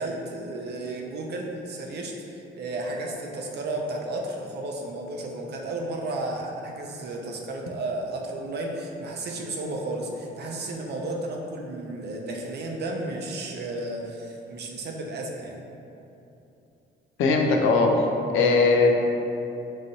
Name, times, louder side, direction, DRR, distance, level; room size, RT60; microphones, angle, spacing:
voice 1, 0.0-15.6, right 2 dB, 55° right, 0 dB, 0.6 m, -33 dB
voice 2, 17.2-18.1 18.3-19.0, left 3 dB, 85° left, 2 dB, 0.5 m, -19 dB
5.5 x 3.1 x 2.6 m, 2.9 s
cardioid pair, 90°, 20 cm